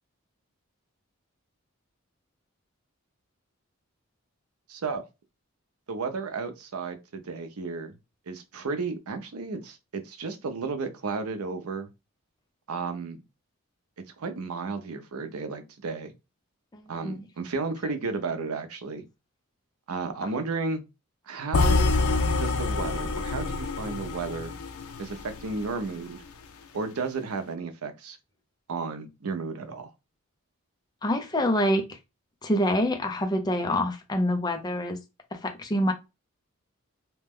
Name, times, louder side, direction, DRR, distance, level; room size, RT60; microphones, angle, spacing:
voice 1, 4.7-5.1 5.9-8.0 8.3-11.9 12.7-13.2 14.2-16.1 16.9-19.0 19.9-20.8 21.3-21.9 22.3-24.5 25.0-26.2 26.7-28.2 28.7-29.9, right 4 dB, 85° right, 0.6 m, -33 dB
voice 2, 16.7-17.2 20.2-20.3 31.0-32.0 32.4-35.0 35.3-35.9, equal, 20° left, 0.5 m, -26 dB
sound 1, 21.5-25.6, left 3 dB, 80° left, 0.5 m, -26 dB
2.9 x 2.1 x 3.5 m
head